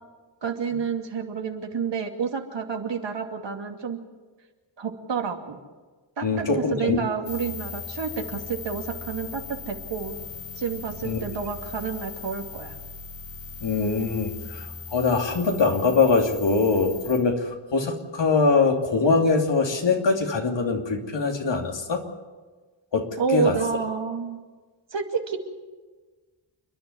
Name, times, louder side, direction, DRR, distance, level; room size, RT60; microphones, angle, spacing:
voice 1, 0.4-4.0 4.8-5.6 6.2-10.2 10.6-12.8 23.2-24.4 24.9-25.4, right 6 dB, 70° right, 3 dB, 2.6 m, -29 dB
voice 2, 6.2-7.0 11.0-11.2 13.6-22.0 22.9-23.6, left 4 dB, 70° left, 3 dB, 2.9 m, -23 dB
sound 1, 7.2-17.2, left 5 dB, 90° left, 6.0 m, -39 dB
28.5 x 11.0 x 9.8 m, 1.4 s
cardioid pair, 70°, 45 cm